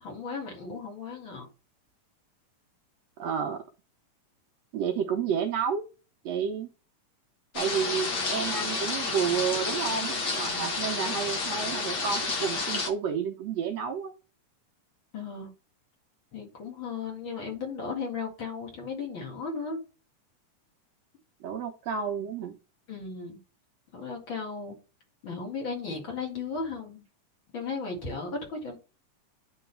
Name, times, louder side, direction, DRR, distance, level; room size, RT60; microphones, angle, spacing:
voice 1, 0.0-1.5 15.1-15.5 16.3-19.8 22.9-23.4 23.9-24.8 25.2-27.0 27.5-28.8, left 4 dB, 45° left, 2.4 m, -35 dB
voice 2, 3.2-3.6 4.7-5.9 6.2-6.7 7.5-14.1 21.4-22.5, right 7 dB, 70° right, 1.7 m, -30 dB
sound 1, 7.5-12.9, left 3 dB, 60° left, 1.1 m, -30 dB
10.0 x 4.0 x 3.4 m
omnidirectional pair, 3.7 m